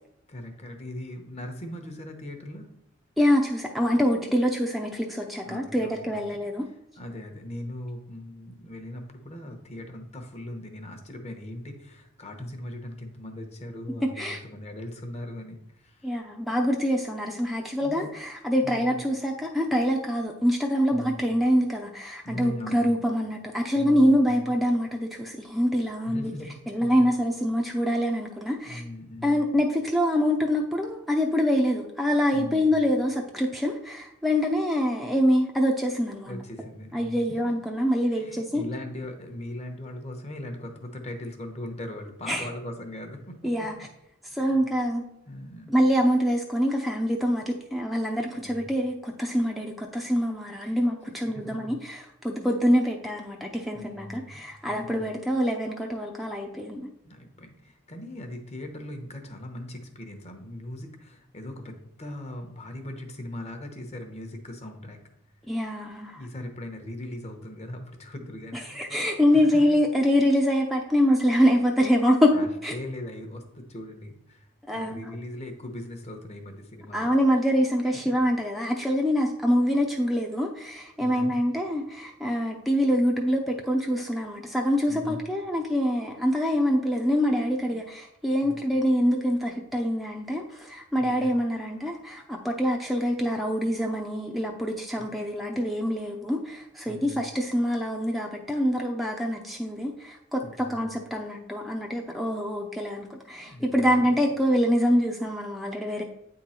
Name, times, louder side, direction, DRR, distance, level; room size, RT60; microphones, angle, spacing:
voice 1, 0.3-2.7 5.4-6.2 6.7-16.1 17.8-18.1 18.6-19.0 20.9-21.3 22.2-22.9 23.7-24.6 26.0-27.1 28.6-29.5 32.3-32.7 36.3-37.2 38.1-43.5 44.3-44.7 45.3-45.7 48.3-48.7 51.3-51.8 53.7-55.0 57.0-65.0 66.1-69.5 72.3-77.1 77.9-78.2 81.0-81.3 84.9-85.2 88.4-88.7 91.0-91.3 95.0-95.1 96.9-97.2 100.4-100.8 103.3-104.2, left 1 dB, 35° left, 5 dB, 0.9 m, -40 dB
voice 2, 3.2-6.7 14.2-14.4 16.0-26.3 26.7-28.8 29.2-36.3 36.9-38.6 42.3-42.5 43.4-43.9 44.3-45.0 45.7-56.9 65.5-66.2 68.7-72.3 72.6-72.7 74.7-75.1 76.9-106.0, equal, ahead, 1 dB, 0.5 m, -25 dB
8.7 x 3.8 x 4.3 m, 0.81 s
head